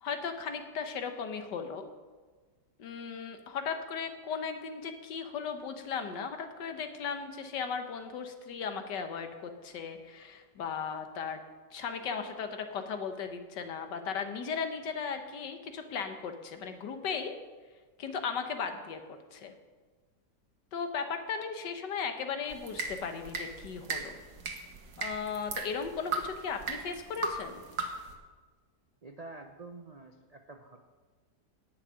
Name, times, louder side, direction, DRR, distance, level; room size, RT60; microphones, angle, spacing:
voice 1, 0.0-1.9 2.8-11.4 11.7-17.3 18.0-19.5 20.7-24.2 25.0-27.6, left 6 dB, 80° left, 7 dB, 1.7 m, -36 dB
sound 1, 22.5-28.1, right 3 dB, 60° right, 1.8 m, -38 dB
voice 2, 29.0-30.8, right 3 dB, 90° right, 5 dB, 0.3 m, -47 dB
10.5 x 6.6 x 8.9 m, 1.4 s
omnidirectional pair, 1.9 m